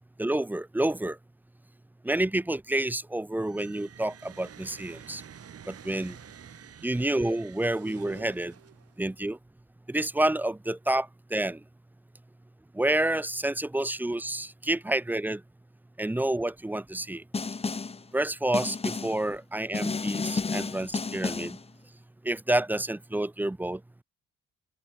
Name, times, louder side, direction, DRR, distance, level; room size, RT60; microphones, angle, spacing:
voice 1, 0.2-1.2 2.0-5.2 5.7-6.2 6.8-8.5 9.0-9.4 9.9-11.6 12.7-15.4 16.0-17.2 18.1-21.6 22.2-23.8, right 1 dB, 5° right, 0.4 m, -29 dB
sound 1, 3.4-9.1, right 8 dB, 50° right, 2.2 m, -49 dB
Snare drum, 17.3-18.0 18.5-19.2 19.7-21.6, left 4 dB, 20° left, 0.8 m, -31 dB
open air
cardioid pair, 90°, 30 cm